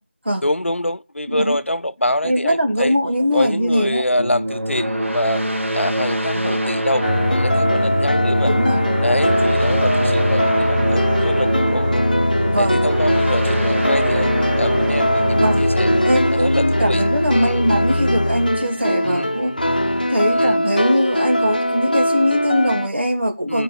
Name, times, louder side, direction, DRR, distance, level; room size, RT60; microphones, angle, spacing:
voice 1, 0.4-3.0 3.3-5.4 5.7-8.5 9.0-12.1 12.6-15.9 16.3-17.0 17.3-17.6 19.0-19.3 20.3-20.6 23.5-23.6, left 1 dB, 90° left, 0.6 m, -25 dB
voice 2, 2.2-4.0 8.4-8.8 12.4-12.8 15.3-15.6 16.0-19.5 20.0-23.6, equal, 60° right, 2.4 m, -21 dB
sound 1, 4.2-17.5, equal, 90° right, 2.5 m, -24 dB
sound 2, 7.0-22.9, equal, 45° left, 0.9 m, -20 dB
13.0 x 5.3 x 8.6 m
figure-of-eight pair, 175°, 7 cm